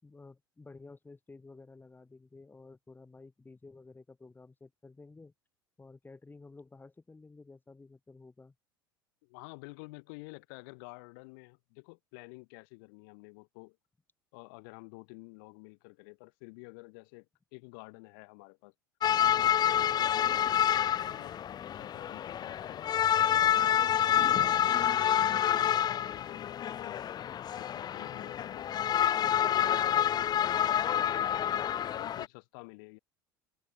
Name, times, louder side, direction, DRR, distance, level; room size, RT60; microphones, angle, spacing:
voice 1, 0.0-5.3 5.8-8.5, left 3 dB, 15° left, 4.2 m, -53 dB
voice 2, 9.2-13.8 14.3-18.7 19.2-21.4 21.7-22.9 23.4-27.0 27.5-29.1 29.5-31.5 31.9-33.0, left 32 dB, 65° left, 2.0 m, -50 dB
sound 1, 19.0-32.3, left 10 dB, 35° left, 0.8 m, -28 dB
open air
hypercardioid pair, 75°, 12 cm